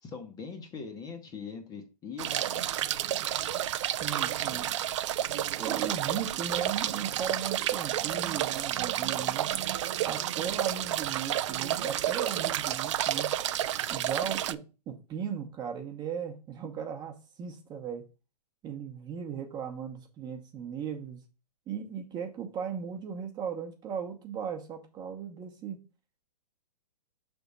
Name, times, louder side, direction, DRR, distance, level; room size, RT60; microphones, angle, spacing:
voice 1, 0.0-2.7 9.7-9.9, left 5 dB, 15° left, 0.8 m, -42 dB
sound 1, 2.2-14.5, right 12 dB, 45° right, 0.4 m, -30 dB
voice 2, 4.0-4.8 5.3-9.5 10.0-13.3 13.9-14.6 14.9-18.0 18.6-21.2 21.7-25.8, right 7 dB, 20° right, 1.0 m, -37 dB
5.9 x 3.5 x 5.3 m
hypercardioid pair, 140°, 21 cm